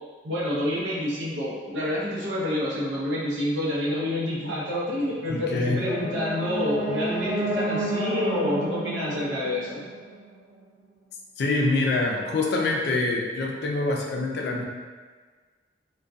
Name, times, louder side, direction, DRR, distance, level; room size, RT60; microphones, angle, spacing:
voice 1, 0.2-9.8, left 1 dB, 85° right, -6 dB, 0.7 m, -28 dB
voice 2, 5.3-5.8 11.4-14.6, left 2 dB, 60° left, 0 dB, 0.3 m, -25 dB
sound 1, 5.4-10.5, right 1 dB, 45° right, 0.5 m, -31 dB
2.5 x 2.2 x 2.3 m, 1.5 s
head